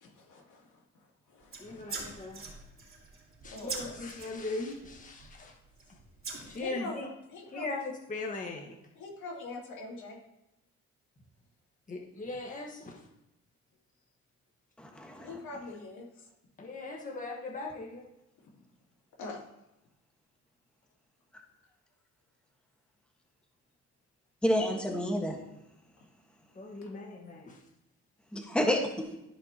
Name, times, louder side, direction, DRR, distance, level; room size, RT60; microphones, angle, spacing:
voice 1, 0.0-0.6 1.3-2.0 3.4-4.0 6.6-7.0 7.3-7.7 9.0-10.2 15.2-16.1 19.2-19.4, left 2 dB, 80° left, -2 dB, 2.8 m, -43 dB
sound 1, 1.4-5.5 5.8-6.6, right 4 dB, 45° right, 3.3 m, -43 dB
voice 2, 1.6-2.4 3.4-5.5 6.4-7.1 7.4-8.8 11.9-13.1 16.6-18.0 26.5-27.6, left 3 dB, 25° left, 0 dB, 1.5 m, -39 dB
voice 3, 14.8-15.4 24.4-25.4 28.3-29.0, equal, 5° left, 1 dB, 1.5 m, -29 dB
14.0 x 5.4 x 3.0 m, 0.91 s
cardioid pair, 90°, 30 cm